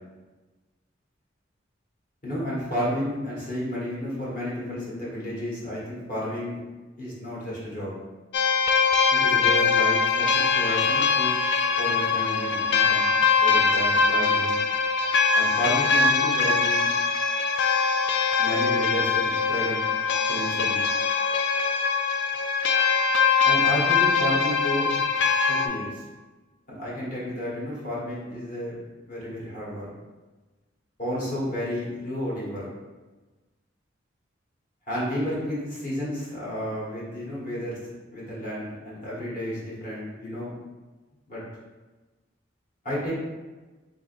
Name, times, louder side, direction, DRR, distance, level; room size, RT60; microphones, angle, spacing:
voice 1, 2.2-6.6 7.0-7.9 9.1-11.4 11.8-13.1 13.4-14.5 15.3-16.8 18.4-19.9 20.3-20.8 23.4-25.0 25.4-26.0 26.7-28.8 29.1-29.9 31.0-32.7 34.9-37.8 38.1-40.5 41.3-41.4 42.8-43.1, equal, 45° left, -7 dB, 1.4 m, -31 dB
sound 1, 8.3-25.7, left 5 dB, 65° left, 0.3 m, -22 dB
3.9 x 3.7 x 2.5 m, 1.2 s
head